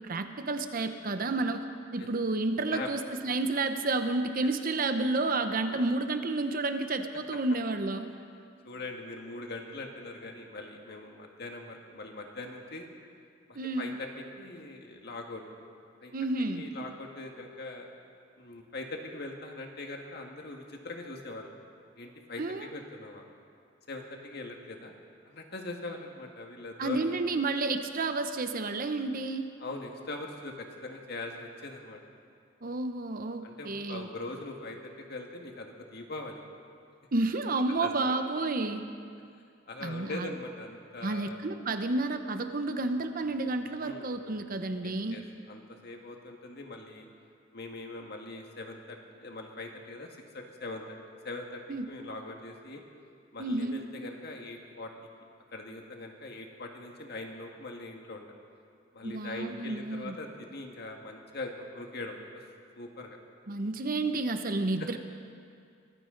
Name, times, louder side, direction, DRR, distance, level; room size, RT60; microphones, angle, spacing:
voice 1, 0.0-1.7 1.9-8.1 13.5-13.9 16.1-16.6 22.4-22.7 26.8-29.5 32.6-34.1 37.1-38.9 39.8-40.3 41.0-45.2 51.7-51.9 53.4-53.8 59.0-60.2 63.5-65.0, right 2 dB, 50° right, 8 dB, 0.8 m, -31 dB
voice 2, 8.6-12.9 13.5-14.1 14.3-15.4 16.0-16.1 16.5-17.9 18.4-21.5 22.0-23.3 23.9-24.9 25.3-27.1 29.6-32.0 33.4-36.4 37.8-38.1 39.7-41.4 43.8-44.1 44.8-45.2 45.5-47.1 47.5-51.0 51.2-51.6 51.9-52.8 53.3-54.9 55.5-58.3 58.9-62.4 62.8-63.2, left 2 dB, 55° left, 2 dB, 1.8 m, -41 dB
23.5 x 15.0 x 3.9 m, 2.3 s
head